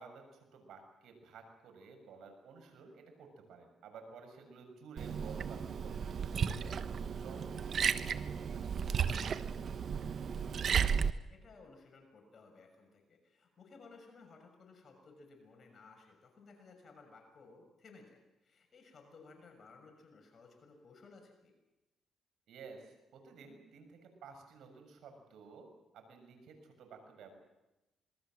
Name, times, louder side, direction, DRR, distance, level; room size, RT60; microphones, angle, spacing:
voice 1, 0.0-6.9 7.2-9.2 22.5-27.3, right 5 dB, 75° right, 5 dB, 6.7 m, -54 dB
Liquid, 5.0-11.1, right 7 dB, 55° right, 1.1 m, -34 dB
voice 2, 10.3-10.7 11.3-21.5, left 4 dB, 45° left, 3 dB, 6.6 m, -58 dB
27.0 x 21.0 x 7.7 m, 1.0 s
cardioid pair, 90°, 0 cm